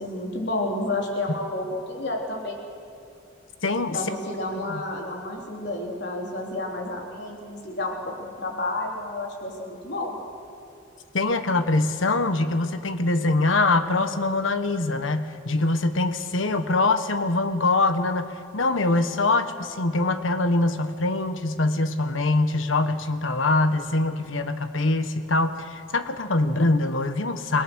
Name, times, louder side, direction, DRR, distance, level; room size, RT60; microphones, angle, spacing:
voice 1, 0.0-2.6 3.9-10.2, left 2 dB, 55° left, 0 dB, 4.0 m, -30 dB
voice 2, 3.6-4.0 4.7-4.8 11.1-27.6, left 2 dB, 80° left, 10 dB, 1.3 m, -23 dB
29.5 x 18.0 x 6.4 m, 2.8 s
head